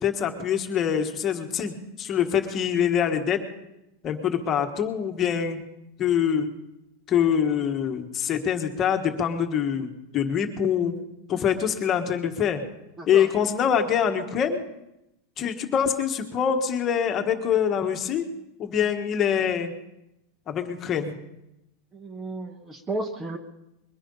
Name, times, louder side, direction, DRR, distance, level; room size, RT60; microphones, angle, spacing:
voice 1, 0.0-1.7 2.0-3.4 4.0-5.6 6.0-6.5 7.1-10.9 11.3-12.6 13.1-14.6 15.4-18.3 18.6-19.7 20.5-21.1, left 8 dB, 30° left, 6 dB, 1.5 m, -24 dB
voice 2, 13.0-13.3 21.9-23.4, right 2 dB, 15° right, 7 dB, 1.1 m, -33 dB
22.0 x 10.0 x 5.6 m, 0.90 s
supercardioid pair, 145°, 0 cm